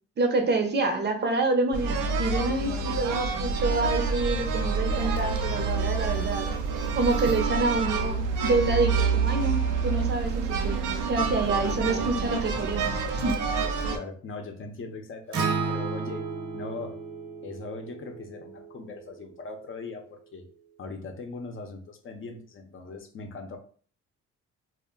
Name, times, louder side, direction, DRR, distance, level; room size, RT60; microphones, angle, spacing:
voice 1, 0.2-6.5 7.0-13.4, right 3 dB, 35° right, 4 dB, 0.6 m, -27 dB
sound 1, 1.7-14.0, right 4 dB, 85° right, 0.5 m, -27 dB
voice 2, 13.9-16.2 16.5-17.0 17.4-20.4 20.8-23.6, left 4 dB, 45° left, 4 dB, 0.7 m, -40 dB
Acoustic guitar, 15.3-19.6, right 4 dB, 65° right, 0.9 m, -33 dB
2.2 x 2.1 x 3.6 m, 0.44 s
cardioid pair, 90°, 30 cm